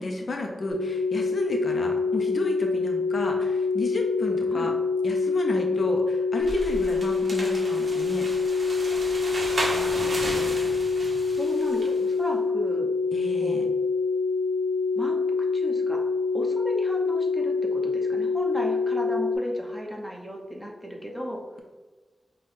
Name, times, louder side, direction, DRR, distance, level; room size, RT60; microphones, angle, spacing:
voice 1, 0.0-4.7 5.0-8.3 13.1-13.7, left 2 dB, 65° left, 2 dB, 0.6 m, -31 dB
sound 1, 0.7-19.4, left 4 dB, 35° right, 0.9 m, -26 dB
sound 2, 6.4-12.0, right 1 dB, 55° right, 1.1 m, -34 dB
voice 2, 9.7-10.6 11.4-12.9 13.4-13.6 15.0-15.2 15.5-16.0 16.3-21.4, equal, ahead, 0 dB, 0.8 m, -35 dB
5.9 x 2.3 x 3.2 m, 1.3 s
wide cardioid pair, 75°, 0 cm